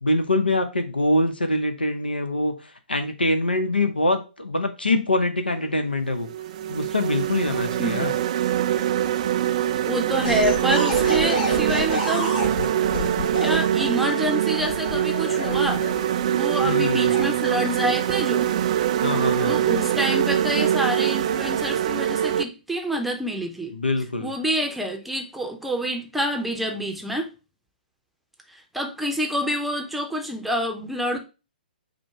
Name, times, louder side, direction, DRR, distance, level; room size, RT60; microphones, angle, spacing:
voice 1, 0.0-2.5 2.9-6.3 6.7-8.1 16.6-17.2 19.0-19.6 23.7-24.3, left 2 dB, 85° left, 0.8 m, -24 dB
sound 1, 5.5-5.7 6.3-22.4, right 11 dB, 45° right, 0.4 m, -23 dB
voice 2, 7.8-8.1 9.9-12.3 13.4-15.9 16.3-18.5 19.5-23.7 24.2-27.3 28.5-31.2, equal, ahead, 0.6 m, -27 dB
sound 2, 10.2-13.6 14.6-16.2 16.9-17.2, left 2 dB, 40° left, 2.5 m, -29 dB
5.0 x 2.2 x 4.7 m
figure-of-eight pair, 125°, 5 cm